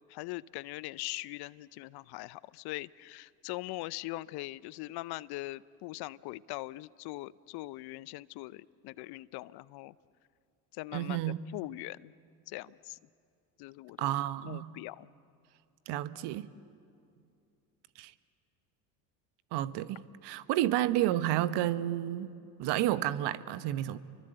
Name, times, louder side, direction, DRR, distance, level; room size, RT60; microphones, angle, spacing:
voice 1, 0.1-9.9 10.7-11.2 11.5-12.1 12.5-13.0 13.6-14.1 14.4-15.1, left 19 dB, 55° left, 20 dB, 0.7 m, -41 dB
voice 2, 10.9-11.5 14.0-14.7 15.9-16.5 18.0-18.1 19.5-22.3 22.6-24.0, right 13 dB, 60° right, 14 dB, 1.2 m, -31 dB
30.0 x 23.5 x 8.0 m, 2.5 s
hypercardioid pair, 70°, 47 cm